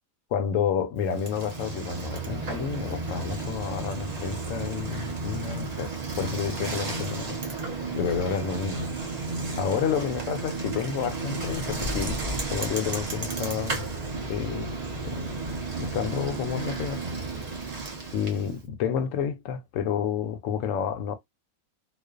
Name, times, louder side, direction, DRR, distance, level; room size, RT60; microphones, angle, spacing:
voice 1, 0.3-7.7 8.0-8.9 9.6-12.2 12.5-13.9 14.3-14.7 15.0-15.4 15.8-17.0 18.1-21.2, left 7 dB, 70° left, 0.9 m, -30 dB
Bicycle, 1.0-18.6, right 3 dB, 45° right, 0.5 m, -33 dB
2.4 x 2.3 x 2.2 m
omnidirectional pair, 1.5 m